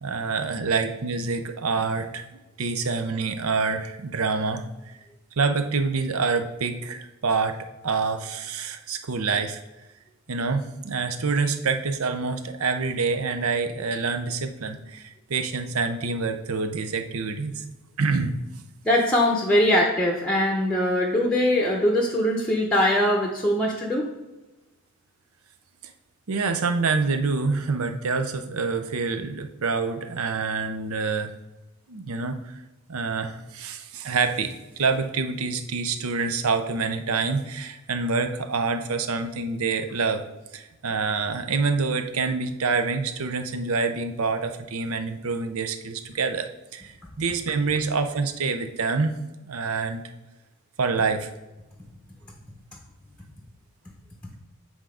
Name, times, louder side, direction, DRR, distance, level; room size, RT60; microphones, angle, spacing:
voice 1, 0.0-2.3 2.6-4.7 5.4-9.6 10.3-17.6 18.0-18.4 26.3-31.3 31.9-32.5 32.9-40.2 40.5-50.0 50.8-51.3, right 4 dB, 80° right, 8 dB, 0.7 m, -26 dB
voice 2, 18.8-24.1, left 1 dB, 5° left, 0 dB, 0.8 m, -22 dB
8.0 x 3.7 x 5.0 m, 1.0 s
head